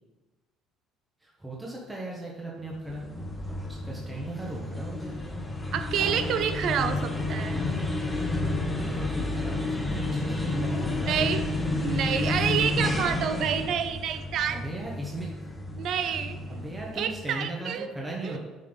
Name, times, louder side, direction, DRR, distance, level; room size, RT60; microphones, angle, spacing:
voice 1, 1.2-3.0 3.8-5.4 8.8-11.3 13.0-13.2 14.5-15.3 16.5-18.4, right 1 dB, 15° right, -4 dB, 1.5 m, -37 dB
sound 1, 2.7-17.2, left 2 dB, 10° left, 1.5 m, -31 dB
voice 2, 5.7-7.6 11.1-11.5 11.8-14.6 15.7-16.4 16.9-17.9 18.2-18.4, right 8 dB, 65° right, 10 dB, 0.7 m, -28 dB
7.2 x 6.2 x 4.0 m, 1.2 s
supercardioid pair, 80°, 0 cm